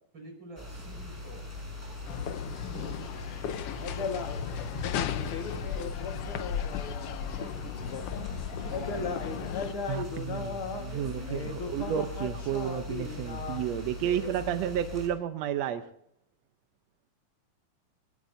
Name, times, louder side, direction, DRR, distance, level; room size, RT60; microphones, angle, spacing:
voice 1, 0.1-1.4 2.6-3.0 6.0-7.0 7.3-7.5 8.5-9.3 10.3-10.4 10.9-11.7 14.0-14.4, right 1 dB, 35° right, 2 dB, 5.8 m, -47 dB
sound 1, 0.6-15.1, left 2 dB, 5° right, 5.5 m, -41 dB
sound 2, 2.1-9.7, left 9 dB, 90° left, 1.3 m, -36 dB
sound 3, 2.2-8.2 8.6-13.9, left 5 dB, 50° left, 2.1 m, -38 dB
voice 2, 9.9-10.6 10.8-15.8, right 10 dB, 75° right, 8 dB, 1.6 m, -31 dB
20.5 x 18.5 x 2.7 m, 0.72 s
omnidirectional pair, 3.8 m